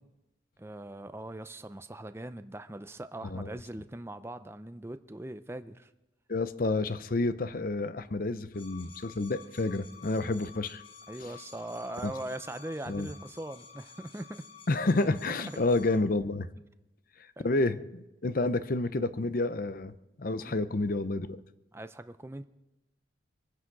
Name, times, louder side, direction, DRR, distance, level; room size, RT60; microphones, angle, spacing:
voice 1, 0.6-5.9 11.1-14.4 17.4-17.5 20.4-20.5 21.7-22.4, right 1 dB, 15° right, 10 dB, 0.5 m, -41 dB
voice 2, 6.3-10.8 11.2-11.3 12.0-12.1 12.9-13.1 14.7-16.5 17.4-21.4, left 2 dB, 50° left, 13 dB, 0.7 m, -29 dB
sound 1, 8.5-16.0, left 6 dB, 30° left, 1.3 m, -51 dB
24.0 x 9.8 x 4.7 m, 0.96 s
head